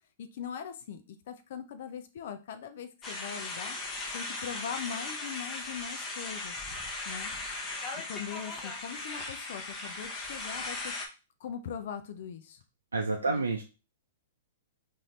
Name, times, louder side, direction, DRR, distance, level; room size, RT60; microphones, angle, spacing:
voice 1, 0.2-6.6 7.0-7.3 7.9-10.9 11.4-12.6 13.3-13.4, left 7 dB, 60° left, 8 dB, 0.5 m, -41 dB
sound 1, 3.0-11.1, left 3 dB, 25° left, 0.9 m, -38 dB
voice 2, 12.9-13.6, right 3 dB, 90° right, 2 dB, 0.5 m, -29 dB
4.0 x 2.7 x 3.2 m, 0.32 s
hypercardioid pair, 115°, 0 cm